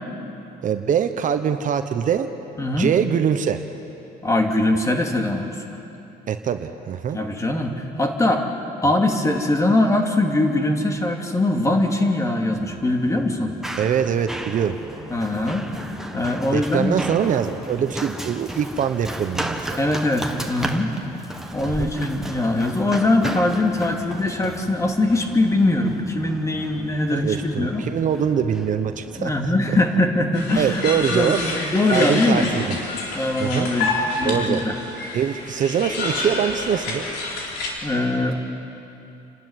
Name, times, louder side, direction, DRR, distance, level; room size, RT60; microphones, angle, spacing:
voice 1, 0.6-2.3 2.8-3.6 6.3-7.2 13.8-14.8 16.5-19.8 21.6-21.9 27.1-29.8 30.6-31.4 31.9-32.8 33.4-33.7 34.2-34.6 35.1-37.0, right 8 dB, 50° right, 9 dB, 1.0 m, -23 dB
voice 2, 2.6-2.9 4.2-5.8 7.1-8.5 8.8-13.5 15.1-15.7 16.1-17.0 19.8-20.9 21.5-27.9 29.2-30.8 31.1-32.5 33.1-34.7 37.8-38.4, left 2 dB, 20° left, 3 dB, 2.5 m, -22 dB
Run, 12.6-29.9, right 1 dB, 5° right, 1.6 m, -34 dB
sound 1, 30.3-37.7, left 2 dB, 80° left, 4.1 m, -28 dB
28.5 x 12.5 x 9.7 m, 2.9 s
cardioid pair, 110°, 17 cm